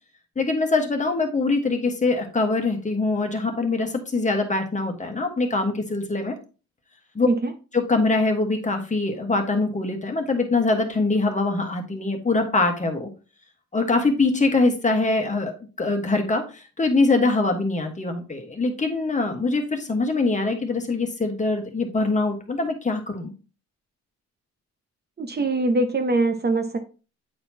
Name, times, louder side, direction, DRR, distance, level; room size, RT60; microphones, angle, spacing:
voice 1, 0.3-6.4 7.1-7.3 7.7-13.1 13.7-15.5 15.8-23.3, left 3 dB, 25° left, 4 dB, 1.4 m, -23 dB
voice 2, 25.2-26.8, right 2 dB, 35° right, 6 dB, 0.9 m, -23 dB
8.7 x 4.2 x 2.8 m, 0.34 s
cardioid pair, 90°, 30 cm